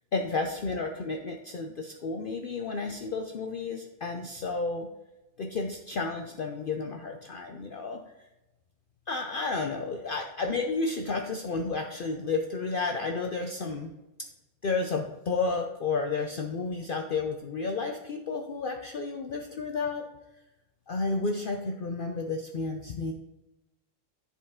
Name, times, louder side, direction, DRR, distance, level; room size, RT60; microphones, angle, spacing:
voice 1, 0.1-4.9 5.4-8.0 9.1-13.9 14.6-20.1 20.9-23.1, left 3 dB, 55° left, 3 dB, 0.6 m, -31 dB
10.0 x 4.4 x 3.6 m, 0.99 s
omnidirectional pair, 1.3 m